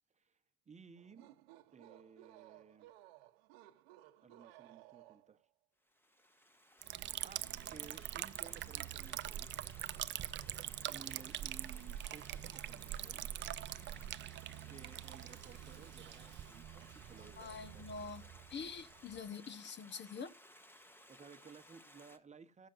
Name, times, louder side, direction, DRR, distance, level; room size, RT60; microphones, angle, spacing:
voice 1, 0.7-1.3 1.7-2.9 4.2-5.4 7.2-9.8 10.9-13.3 13.9-17.9 21.1-22.7, right 6 dB, 25° right, 0.9 m, -57 dB
sound 1, 1.0-5.5, right 15 dB, 85° right, 0.9 m, -59 dB
Stream, 5.9-22.2, equal, 5° left, 1.2 m, -60 dB
Liquid, 6.8-19.3, right 12 dB, 40° right, 0.5 m, -44 dB
voice 2, 17.4-18.2 18.5-20.3, left 5 dB, 35° left, 1.0 m, -45 dB
16.0 x 7.4 x 2.5 m
supercardioid pair, 90°, 30 cm